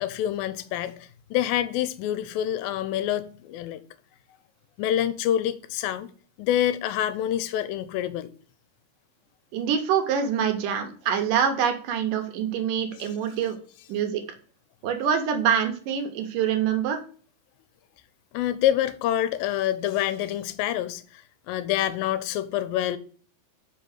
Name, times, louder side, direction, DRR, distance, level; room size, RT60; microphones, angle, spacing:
voice 1, 0.0-3.8 4.8-6.1 6.4-8.3 18.3-23.0, left 11 dB, 85° left, 2.3 m, -27 dB
voice 2, 9.5-13.6 13.9-14.2 14.8-17.0, right 8 dB, 75° right, 2.4 m, -25 dB
5.5 x 4.6 x 6.3 m
omnidirectional pair, 4.1 m